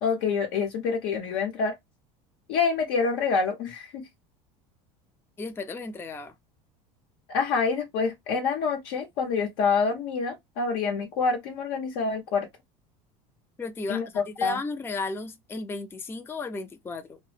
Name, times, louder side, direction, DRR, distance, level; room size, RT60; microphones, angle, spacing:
voice 1, 0.0-1.8 2.5-4.0 7.3-12.5 13.9-14.6, left 5 dB, 70° left, 0.8 m, -27 dB
voice 2, 5.4-6.3 13.6-17.2, left 3 dB, 15° left, 0.4 m, -34 dB
2.0 x 2.0 x 3.0 m
supercardioid pair, 110°, 17 cm